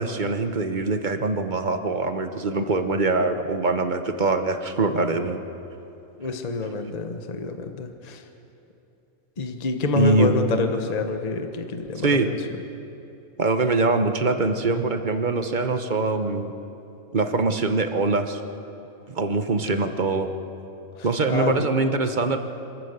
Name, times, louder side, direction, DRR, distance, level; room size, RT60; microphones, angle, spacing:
voice 1, 0.0-5.4 10.0-10.3 12.0-12.3 13.4-16.6 17.1-18.4 19.1-20.3 21.0-22.4, right 3 dB, 35° right, 7 dB, 1.1 m, -23 dB
voice 2, 6.2-8.2 9.4-12.4 21.3-21.7, left 3 dB, 30° left, 6 dB, 1.1 m, -27 dB
26.5 x 13.0 x 8.1 m, 2.9 s
omnidirectional pair, 1.5 m